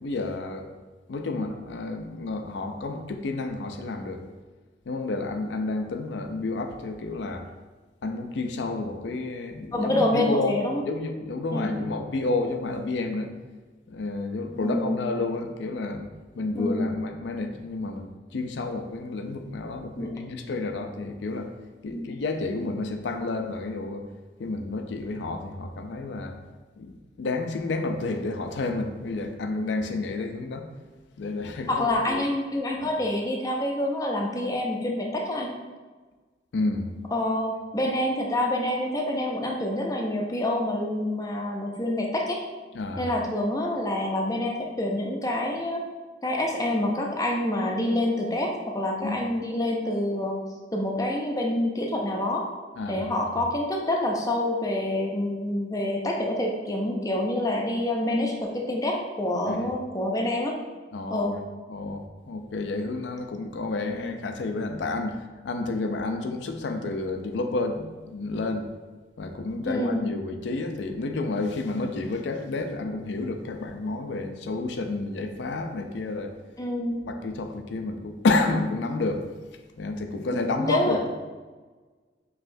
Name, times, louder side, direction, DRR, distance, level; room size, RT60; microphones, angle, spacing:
voice 1, 0.0-0.7 1.1-4.2 4.9-7.5 8.0-10.6 10.8-13.3 13.9-21.5 21.8-24.1 24.4-26.4 26.8-30.7 31.2-32.2 32.8-32.9 36.5-36.9 42.7-43.1 49.0-49.2 52.8-53.1 59.5-59.7 60.9-61.3 61.7-68.7 69.2-76.4 77.0-79.3 79.8-81.1, left 3 dB, 70° left, 6 dB, 0.4 m, -30 dB
voice 2, 9.7-10.8 11.5-11.8 14.6-15.0 16.5-17.0 20.0-20.3 21.9-22.0 31.7-35.5 37.1-42.4 43.0-45.8 46.2-50.4 50.7-52.5 52.9-60.6 61.1-61.4 69.7-70.0 76.6-77.1 80.3-81.1, left 1 dB, 20° left, 0 dB, 0.5 m, -27 dB
5.4 x 3.0 x 2.6 m, 1.3 s
head